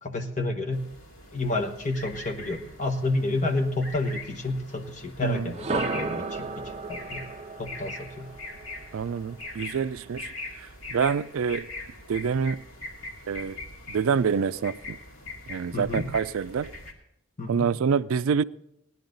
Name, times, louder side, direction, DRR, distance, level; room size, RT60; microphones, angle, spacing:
voice 1, 0.0-0.8 1.3-6.6 6.9-7.2 7.6-8.3 15.7-16.0 17.4-17.7, left 2 dB, 35° left, 1.2 m, -30 dB
sound 1, 0.7-16.9, left 2 dB, 90° left, 2.5 m, -42 dB
voice 2, 5.2-5.5 8.9-10.3 10.9-11.7 12.1-12.6 13.3-13.6 13.9-15.0 15.5-16.7 17.5-18.4, right 6 dB, 85° right, 0.4 m, -26 dB
sound 2, 5.5-9.5, right 3 dB, 30° right, 0.5 m, -34 dB
18.0 x 11.0 x 3.9 m
head